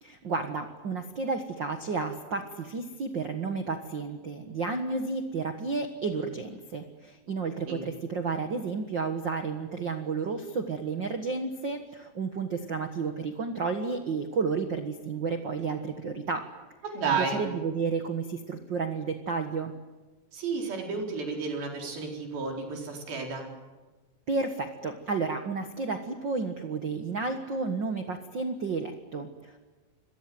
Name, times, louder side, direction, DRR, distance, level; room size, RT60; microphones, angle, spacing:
voice 1, 0.0-16.5 17.2-19.7 24.3-29.6, right 4 dB, 45° right, 6 dB, 1.6 m, -32 dB
voice 2, 16.8-17.5 20.3-23.5, right 4 dB, 90° right, 2 dB, 6.3 m, -32 dB
28.5 x 23.5 x 7.9 m, 1.2 s
omnidirectional pair, 4.1 m